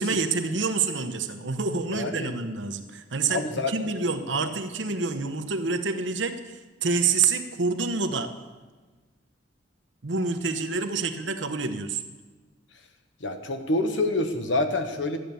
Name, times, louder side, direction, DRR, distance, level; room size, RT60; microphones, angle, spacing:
voice 1, 0.0-8.3 10.0-12.0, right 4 dB, 70° right, 8 dB, 1.0 m, -27 dB
voice 2, 1.9-2.3 3.3-3.7 4.4-4.5 13.2-15.2, left 2 dB, 70° left, 6 dB, 1.3 m, -27 dB
13.0 x 9.0 x 7.0 m, 1.3 s
head